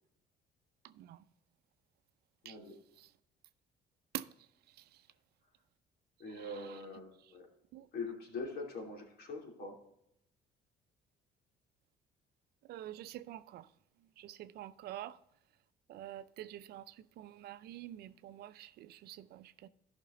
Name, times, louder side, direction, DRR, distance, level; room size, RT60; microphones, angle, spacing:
voice 1, 0.8-1.2 2.4-2.6 3.0-3.1 4.1-4.3 6.3-6.8 7.7-7.9 12.7-13.7 14.2-15.2 15.9-19.7, right 13 dB, 70° right, 0.6 m, -47 dB
voice 2, 2.4-2.7 6.2-7.4 7.9-9.8, left 3 dB, 65° left, 3.0 m, -43 dB
13.5 x 6.0 x 3.8 m
cardioid pair, 110°, 17 cm